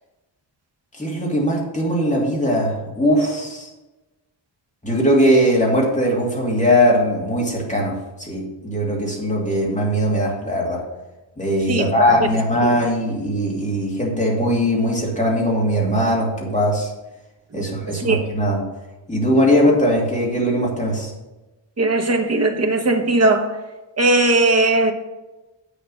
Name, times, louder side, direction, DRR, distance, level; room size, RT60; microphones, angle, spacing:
voice 1, 1.0-3.7 4.8-7.9 8.2-10.8 11.4-16.9 17.5-18.6 19.1-21.1, equal, 15° left, 2.4 m, -20 dB
voice 2, 11.7-12.1 12.6-12.9 17.5-18.2 21.8-23.5 24.0-24.9, right 2 dB, 35° right, 1.0 m, -19 dB
8.3 x 6.8 x 5.5 m
wide cardioid pair, 160°, 45 cm